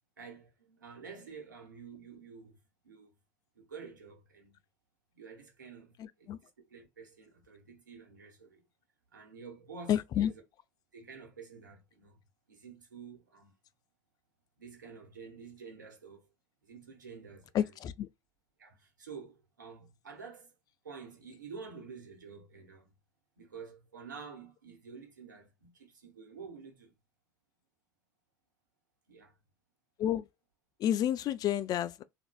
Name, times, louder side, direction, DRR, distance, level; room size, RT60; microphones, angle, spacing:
voice 1, 0.2-3.1 3.5-4.6 5.1-6.4 6.7-8.7 9.1-10.3 10.9-12.2 12.5-13.5 14.6-16.3 16.6-17.7 18.6-20.5 20.8-22.9 23.4-26.9 29.1-29.4, right 5 dB, 85° right, 1.1 m, -49 dB
voice 2, 6.0-6.4 9.9-10.3 17.5-18.1 30.0-30.3 30.8-32.0, left 11 dB, 40° left, 0.4 m, -30 dB
3.8 x 2.6 x 2.3 m
hypercardioid pair, 70°, 10 cm